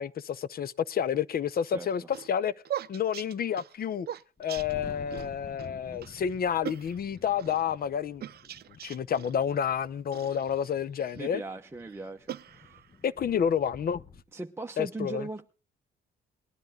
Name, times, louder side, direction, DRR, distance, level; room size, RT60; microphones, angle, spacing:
voice 1, 0.0-2.0 2.3-2.5 2.9-4.1 4.4-8.2 8.7-11.4 13.0-14.0 14.8-15.2, left 8 dB, 50° left, 0.7 m, -29 dB
voice 2, 1.7-2.1 11.1-12.8 14.3-15.5, right 2 dB, 10° right, 0.9 m, -39 dB
sound 1, 1.7-5.3 5.6-5.7 6.0-6.2 6.6-7.6 8.2-9.3 10.1-11.2 11.8-13.0, right 11 dB, 55° right, 0.5 m, -41 dB
Thunder, 4.4-14.2, left 4 dB, 30° left, 1.3 m, -50 dB
19.5 x 10.5 x 3.7 m
cardioid pair, 90°, 20 cm